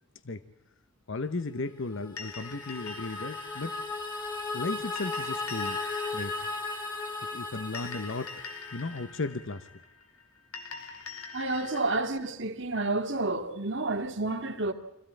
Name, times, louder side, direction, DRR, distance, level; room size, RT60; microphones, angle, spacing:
voice 1, 1.1-3.7 4.5-5.8 6.1-6.5 7.3-8.4 8.7-9.7, left 3 dB, 60° left, 0.9 m, -35 dB
sound 1, 1.9-9.0, left 3 dB, 20° left, 2.5 m, -36 dB
sound 2, 2.2-12.0, left 4 dB, 80° left, 3.4 m, -45 dB
voice 2, 11.3-14.7, right 2 dB, 55° right, 2.2 m, -30 dB
25.5 x 15.5 x 8.8 m
head